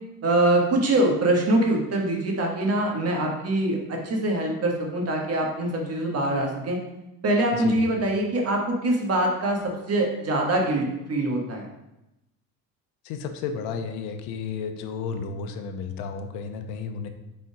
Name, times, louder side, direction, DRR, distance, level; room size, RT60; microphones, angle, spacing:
voice 1, 0.2-6.8 7.2-9.6 9.9-11.7, right 1 dB, 40° right, 0 dB, 1.6 m, -24 dB
voice 2, 13.0-17.1, left 5 dB, 90° left, 6 dB, 0.8 m, -32 dB
5.6 x 4.2 x 4.8 m, 0.93 s
cardioid pair, 115°, 38 cm